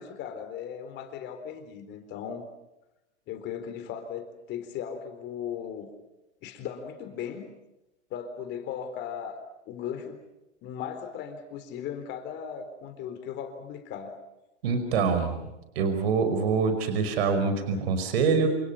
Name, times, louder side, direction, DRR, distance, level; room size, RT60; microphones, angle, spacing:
voice 1, 0.0-2.5 3.3-5.9 6.4-7.4 8.1-10.2 10.6-14.2, left 8 dB, 30° left, 8 dB, 4.0 m, -37 dB
voice 2, 14.6-15.4 15.8-18.5, right 5 dB, 60° right, 8 dB, 5.3 m, -25 dB
28.0 x 28.0 x 5.8 m, 0.94 s
hypercardioid pair, 140°, 35 cm